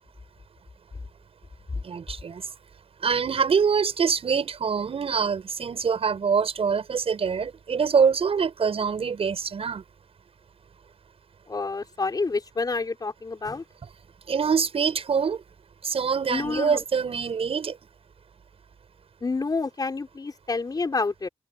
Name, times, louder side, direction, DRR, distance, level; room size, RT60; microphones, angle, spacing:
voice 1, 1.8-2.4 3.0-9.8 14.3-15.4 15.8-17.8, right 6 dB, 60° right, 7.8 m, -24 dB
voice 2, 11.5-13.6 16.3-16.8 19.2-21.3, left 3 dB, 35° left, 5.1 m, -28 dB
cardioid pair, 90°, 11 cm